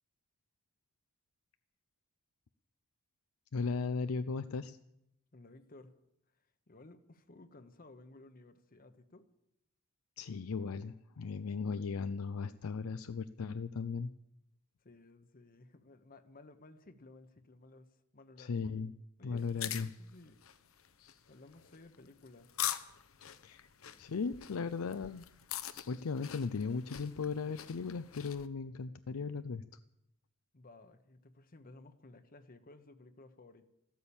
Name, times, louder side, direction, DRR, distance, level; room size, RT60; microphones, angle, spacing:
voice 1, 3.5-4.8 10.2-14.1 18.4-18.9 19.2-19.9 23.4-23.7 24.0-25.2 25.9-29.6, left 4 dB, 90° left, 12 dB, 0.5 m, -37 dB
voice 2, 5.3-5.9 6.7-9.3 14.8-17.9 18.1-18.7 19.2-20.4 21.3-22.5 30.5-33.7, left 2 dB, 45° left, 9 dB, 1.0 m, -56 dB
sound 1, 19.4-28.5, left 11 dB, 70° left, 0.9 m, -44 dB
14.0 x 13.0 x 7.1 m, 0.83 s
head